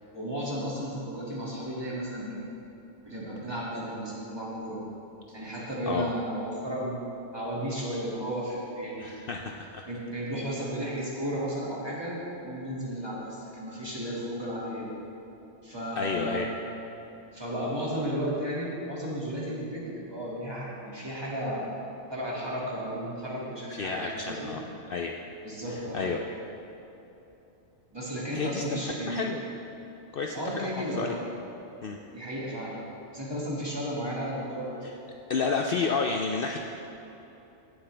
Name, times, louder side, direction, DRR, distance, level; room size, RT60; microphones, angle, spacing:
voice 1, 0.1-2.4 3.0-4.8 5.3-7.0 7.3-9.1 9.9-14.9 15.6-16.4 17.3-21.7 22.1-24.5 25.4-26.1 27.9-29.2 30.3-31.2 32.1-32.8 33.1-34.8, equal, 20° right, -6 dB, 2.2 m, -34 dB
voice 2, 9.0-9.8 16.0-16.5 23.7-24.6 24.9-25.2 25.7-26.2 28.3-29.4 30.1-31.1 31.8-32.0 34.8-34.9 35.3-36.6, left 5 dB, 60° left, 2 dB, 0.7 m, -31 dB
17.0 x 7.8 x 3.3 m, 3.0 s
omnidirectional pair, 1.2 m